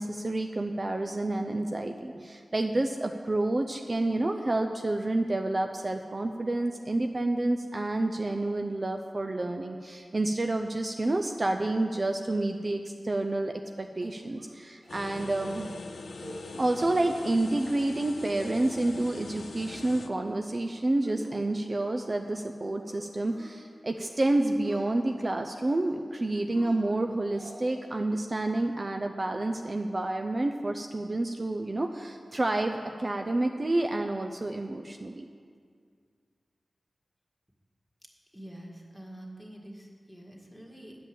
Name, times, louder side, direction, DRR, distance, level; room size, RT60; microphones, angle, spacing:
voice 1, 0.0-15.7 16.6-35.3, right 2 dB, 40° right, 5 dB, 0.5 m, -29 dB
sound 1, 14.0-14.6 14.8-14.9 15.3-15.5 16.0-16.4 16.7-17.2 17.6-18.0 18.3-19.0 19.4-19.9 20.2-20.6 21.0-22.5 22.9-23.5 23.8-24.2 24.5-25.1 25.6-26.1 26.5-27.8, right 1 dB, 85° right, 2.3 m, -49 dB
sound 2, 14.9-20.1, left 3 dB, 80° left, 0.4 m, -42 dB
voice 2, 38.3-41.0, right 1 dB, 5° left, -1 dB, 1.7 m, -46 dB
8.9 x 5.2 x 7.7 m, 2.1 s
cardioid pair, 50°, 0 cm